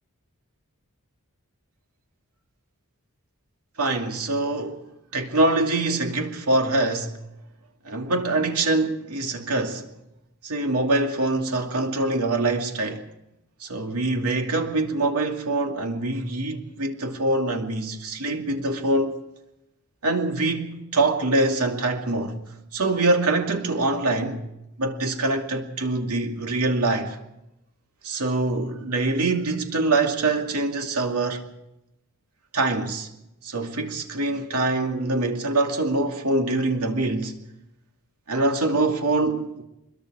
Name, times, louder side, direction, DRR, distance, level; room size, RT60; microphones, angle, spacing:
voice 1, 3.8-4.9 5.1-7.2 7.8-9.9 10.4-13.1 13.6-19.2 20.0-22.4 22.7-24.4 24.8-27.2 28.0-31.4 32.5-33.1 33.4-37.4 38.3-39.7, right 2 dB, 80° right, 2.6 m, -24 dB
23.5 x 22.0 x 4.9 m
head